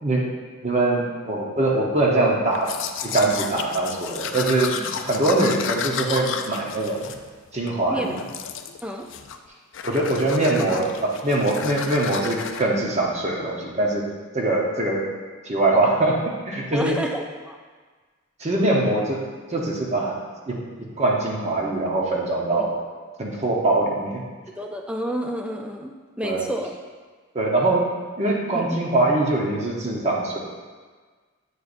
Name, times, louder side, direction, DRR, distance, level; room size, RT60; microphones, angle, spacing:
voice 1, 0.6-2.7 3.0-7.1 7.5-8.1 9.8-14.0 14.3-15.1 15.4-17.0 18.4-19.2 19.5-20.2 20.5-22.8 23.2-24.2 26.2-26.5 27.3-27.9 28.2-30.4, right 2 dB, 35° right, -2 dB, 0.9 m, -23 dB
Domestic sounds home sounds, 2.5-7.8 8.2-8.8 9.1-9.5 9.7-12.6, left 7 dB, 60° left, 0.4 m, -32 dB
voice 2, 16.7-17.6 22.6-22.7 24.5-26.7 28.5-28.8, equal, 5° right, 2 dB, 0.4 m, -30 dB
8.1 x 4.5 x 2.6 m, 1.5 s
head